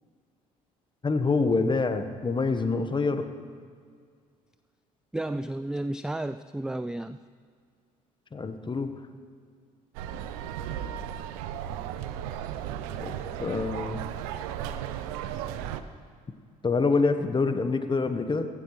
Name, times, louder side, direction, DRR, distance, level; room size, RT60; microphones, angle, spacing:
voice 1, 1.0-3.3 8.3-8.9 13.0-13.1 13.4-14.0 16.6-18.5, left 4 dB, 25° left, 8 dB, 1.2 m, -26 dB
voice 2, 5.1-7.2, right 1 dB, 5° right, 12 dB, 0.3 m, -32 dB
sound 1, 9.9-15.8, right 10 dB, 75° right, 0.6 m, -35 dB
16.0 x 15.5 x 3.2 m, 2.1 s
hypercardioid pair, 55°, 19 cm